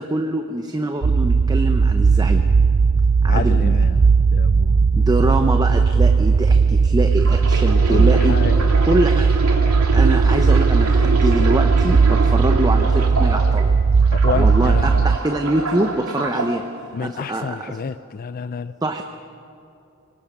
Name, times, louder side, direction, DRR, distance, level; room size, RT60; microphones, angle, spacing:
voice 1, 0.0-2.4 3.2-3.8 4.9-8.4 8.8-9.3 9.9-13.7 14.3-16.6 17.0-17.8 18.8-19.0, right 1 dB, 20° right, 5 dB, 0.7 m, -24 dB
sound 1, 1.0-15.2, right 5 dB, 45° right, 0.4 m, -16 dB
voice 2, 3.3-5.1 7.9-8.7 14.1-15.0 16.9-18.7, left 5 dB, 40° left, 13 dB, 0.4 m, -29 dB
sound 2, 7.1-13.6 14.0-16.5 17.2-17.4, right 2 dB, 90° right, 2.5 m, -27 dB
24.0 x 18.5 x 6.1 m, 2.6 s
head